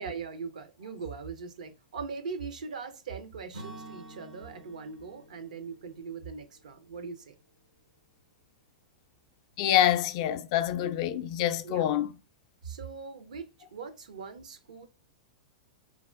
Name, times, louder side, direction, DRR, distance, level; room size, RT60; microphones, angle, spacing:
voice 1, 0.0-7.3 11.6-11.9 12.6-14.9, right 5 dB, 70° right, 0.5 m, -40 dB
Acoustic guitar / Strum, 3.5-7.5, right 1 dB, 90° right, 1.0 m, -49 dB
voice 2, 9.6-12.1, left 12 dB, 50° left, 0.3 m, -26 dB
3.4 x 2.1 x 2.3 m
figure-of-eight pair, 100°, 4 cm